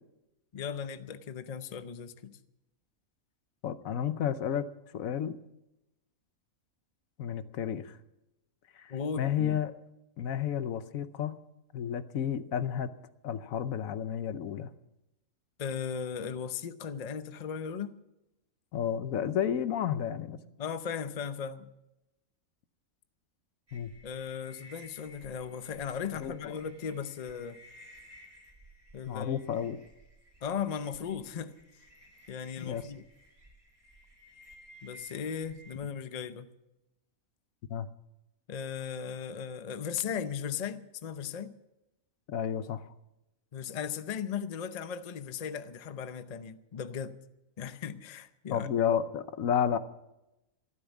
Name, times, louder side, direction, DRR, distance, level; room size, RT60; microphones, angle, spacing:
voice 1, 0.5-2.4 8.9-9.6 15.6-18.0 20.6-21.7 24.0-27.6 28.9-29.4 30.4-31.5 32.3-33.0 34.8-36.5 38.5-41.5 43.5-47.2 47.6-48.7, left 7 dB, 40° left, 0.6 m, -37 dB
voice 2, 3.6-4.7 4.9-5.4 7.2-8.0 8.7-9.7 10.2-11.4 11.7-12.9 13.2-14.7 18.7-20.4 23.7-23.9 26.2-26.6 29.1-29.8 32.6-32.8 37.7-37.9 42.3-42.9 48.5-49.8, left 9 dB, 75° left, 1.2 m, -31 dB
sound 1, 23.7-35.7, equal, 25° right, 2.5 m, -56 dB
14.0 x 12.5 x 7.2 m
omnidirectional pair, 1.5 m